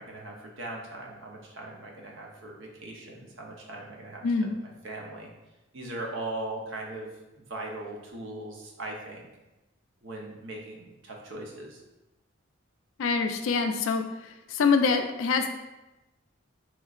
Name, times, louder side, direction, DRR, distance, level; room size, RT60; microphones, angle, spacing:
voice 1, 0.0-4.5 4.8-5.3 5.7-7.1 7.4-9.3 10.0-11.8, right 2 dB, 70° right, 0 dB, 0.7 m, -39 dB
voice 2, 4.2-4.6 13.0-15.5, left 4 dB, 90° left, 7 dB, 0.4 m, -25 dB
3.6 x 3.1 x 2.4 m, 1.0 s
head